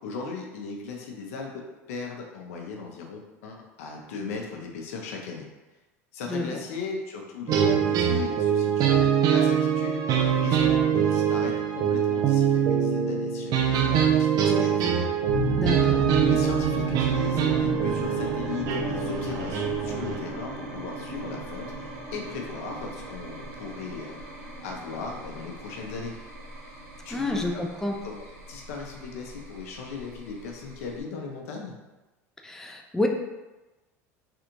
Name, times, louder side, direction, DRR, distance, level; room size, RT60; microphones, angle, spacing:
voice 1, 0.0-5.5 6.1-14.9 16.2-24.2 24.6-26.1 27.0-31.7, left 4 dB, 75° left, 1 dB, 0.7 m, -38 dB
sound 1, 7.5-20.2, right 8 dB, 50° right, 0.5 m, -24 dB
sound 2, 15.3-31.0, right 2 dB, 80° right, 0.8 m, -34 dB
voice 2, 15.6-16.1 27.1-27.9 32.4-33.1, left 2 dB, 5° left, 2 dB, 0.4 m, -29 dB
3.4 x 2.4 x 3.0 m, 1.1 s
hypercardioid pair, 90°, 8 cm